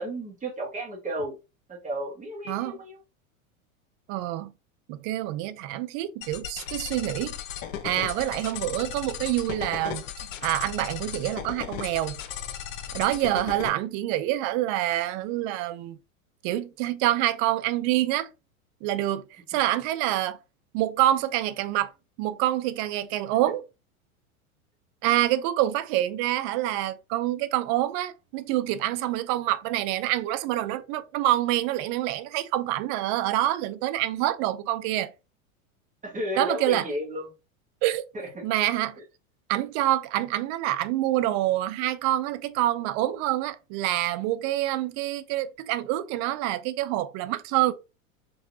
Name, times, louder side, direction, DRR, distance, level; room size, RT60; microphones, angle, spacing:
voice 1, 0.0-1.4 1.7-3.0 36.0-37.3 38.1-38.3, equal, 20° right, 2.0 m, -33 dB
voice 2, 2.5-2.8 4.1-4.5 4.9-7.4 7.8-10.1 10.4-12.2 12.9-16.0 16.4-18.3 18.8-19.2 19.5-20.4 20.7-21.9 22.2-23.6 25.0-35.1 36.4-36.9 37.8-38.0 38.4-39.0 39.5-47.7, right 14 dB, 40° right, 0.6 m, -26 dB
sound 1, 6.2-13.7, left 9 dB, 60° left, 1.0 m, -36 dB
5.4 x 3.4 x 2.8 m
hypercardioid pair, 100°, 42 cm